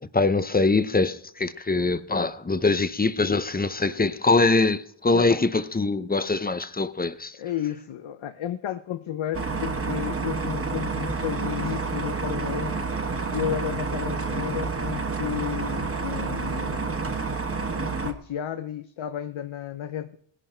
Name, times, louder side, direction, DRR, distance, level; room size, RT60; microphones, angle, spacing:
voice 1, 0.0-7.4, left 3 dB, 20° left, 0.7 m, -23 dB
voice 2, 7.3-12.8 13.3-17.0 17.7-20.2, left 10 dB, 75° left, 0.8 m, -32 dB
sound 1, 9.3-18.1, right 4 dB, 30° right, 1.2 m, -29 dB
18.5 x 11.0 x 4.4 m
wide cardioid pair, 150°, 47 cm